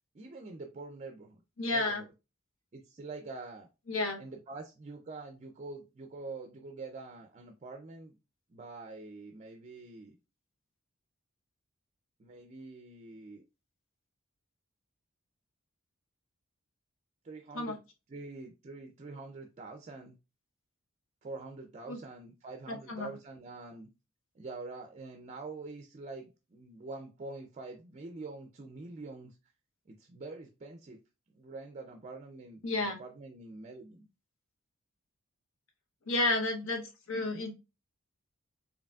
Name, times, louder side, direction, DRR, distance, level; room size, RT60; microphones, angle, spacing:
voice 1, 0.1-1.4 1.7-2.1 2.7-3.7 4.2-8.2 8.5-10.2 12.2-13.4 17.2-17.8 18.1-20.2 21.2-23.9 24.4-29.3 29.9-31.0 31.3-34.1, right 3 dB, 35° right, 5 dB, 0.4 m, -45 dB
voice 2, 1.6-2.0 3.9-4.2 17.5-17.8 21.9-22.0 22.7-23.1 32.6-33.0 36.1-37.5, left 2 dB, 70° left, 4 dB, 0.9 m, -31 dB
4.9 x 2.8 x 2.3 m, 0.28 s
head